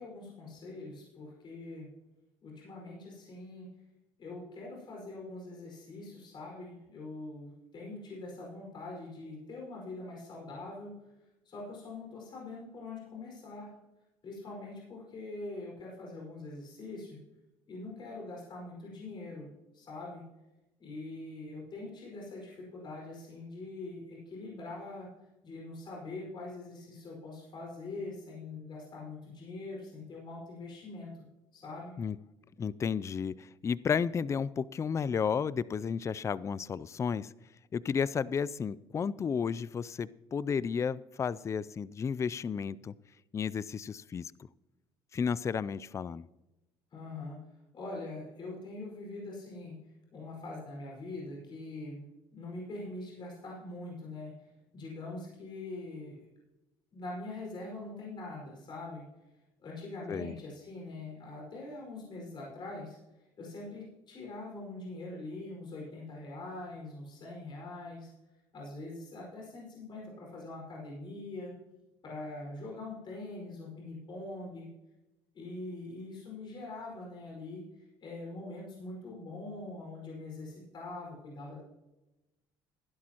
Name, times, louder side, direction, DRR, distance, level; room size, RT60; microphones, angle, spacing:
voice 1, 0.0-1.9 2.4-3.7 4.2-10.9 11.4-13.7 14.2-17.2 17.7-19.5 19.7-20.2 20.8-25.1 25.4-31.2 31.5-31.9 46.9-47.4 47.7-49.8 50.1-52.0 52.3-54.3 54.7-56.1 56.9-59.0 59.6-63.0 63.4-68.1 68.5-71.5 72.0-74.7 75.3-81.6, left 2 dB, 45° left, -2 dB, 5.0 m, -43 dB
voice 2, 32.6-37.3 37.7-42.9 43.3-44.3 45.1-46.2 60.1-60.3, left 6 dB, 30° left, 20 dB, 0.4 m, -32 dB
16.0 x 11.0 x 2.9 m, 1.0 s
supercardioid pair, 85°, 11 cm